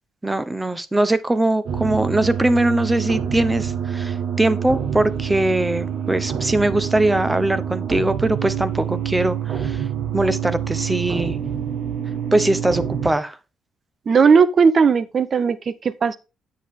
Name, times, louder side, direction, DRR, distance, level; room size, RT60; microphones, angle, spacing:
voice 1, 0.2-9.8 10.1-11.4 12.3-13.4, right 1 dB, 15° right, 0.9 m, -21 dB
sound 1, 1.7-13.1, right 8 dB, 65° right, 1.5 m, -26 dB
voice 2, 14.1-16.2, right 5 dB, 45° right, 0.8 m, -16 dB
9.2 x 7.6 x 3.7 m
cardioid pair, 90°, 0 cm